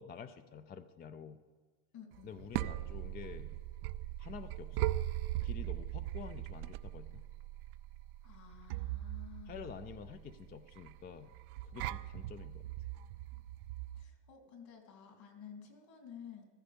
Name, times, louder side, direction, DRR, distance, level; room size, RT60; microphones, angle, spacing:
voice 1, 0.0-1.4 2.2-3.5 4.2-4.9 5.4-7.3 9.5-11.3 11.7-12.7, left 7 dB, 25° left, 10 dB, 0.3 m, -49 dB
voice 2, 1.9-2.3 8.2-9.7 13.9-16.4, left 8 dB, 55° left, 3 dB, 3.0 m, -53 dB
sound 1, 2.1-14.0, right 15 dB, 85° right, 0.6 m, -40 dB
14.5 x 14.5 x 5.1 m, 1.4 s
cardioid pair, 135°, 44 cm